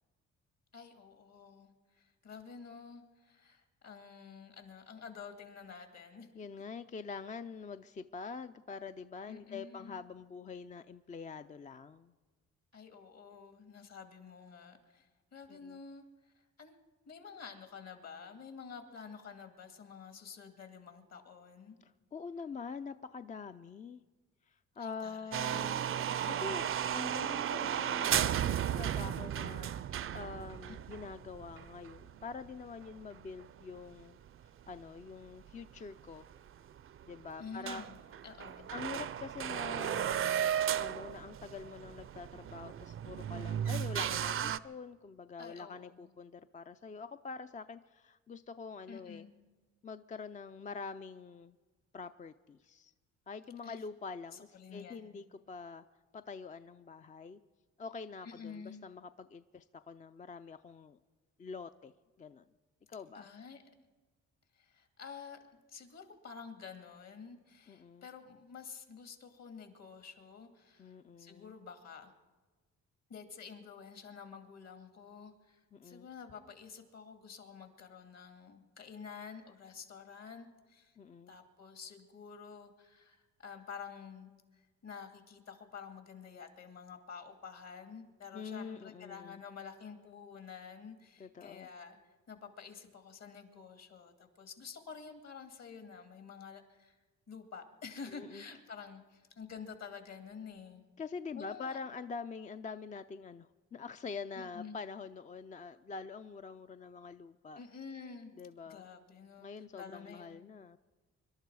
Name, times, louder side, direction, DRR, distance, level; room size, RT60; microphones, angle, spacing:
voice 1, 0.7-6.3 9.3-10.0 12.7-16.3 16.6-16.8 17.1-21.8 24.8-25.6 30.7-31.1 37.4-38.0 38.2-38.7 45.4-46.1 48.9-49.3 53.6-53.8 54.3-55.2 58.2-58.8 63.1-63.6 64.6-65.4 65.7-72.1 73.1-80.9 81.3-92.0 92.3-97.0 97.3-100.8 101.3-101.8 104.4-104.8 107.6-108.3 108.7-109.5 109.7-110.4, left 6 dB, 60° left, 6 dB, 2.3 m, -49 dB
voice 2, 6.3-12.1 15.5-15.8 21.8-24.0 24.5-25.9 26.3-28.4 28.7-34.2 34.7-36.3 37.0-37.8 38.7-40.3 40.8-49.3 49.8-51.6 51.9-52.9 53.3-55.8 56.1-57.4 57.8-61.0 61.4-61.9 62.2-62.5 62.9-63.3 67.7-68.1 70.8-71.6 75.7-76.1 81.0-81.3 88.3-89.4 91.2-91.7 98.1-98.4 101.0-107.6 108.4-108.9 109.4-110.8, left 5 dB, 25° left, 10 dB, 0.4 m, -45 dB
sound 1, 25.3-33.5 33.8-33.9 34.4-34.5 35.5-35.6 35.8-35.9 36.3-36.4 36.8-37.1 37.4-37.5 37.7-44.6, right 9 dB, 45° right, 0.5 m, -35 dB
25.0 x 12.0 x 4.8 m, 1.3 s
cardioid pair, 90°, 30 cm